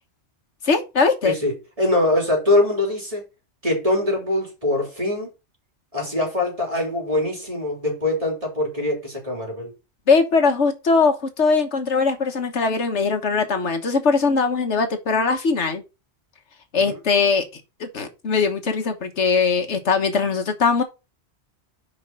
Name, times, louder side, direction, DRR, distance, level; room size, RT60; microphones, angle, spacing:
voice 1, 0.6-1.4 10.1-15.8 16.7-20.8, left 4 dB, 80° left, 1.6 m, -21 dB
voice 2, 1.2-3.2 3.6-5.3 5.9-9.7 16.8-16.9, left 1 dB, 30° right, 3.6 m, -23 dB
5.6 x 5.5 x 5.4 m
omnidirectional pair, 1.2 m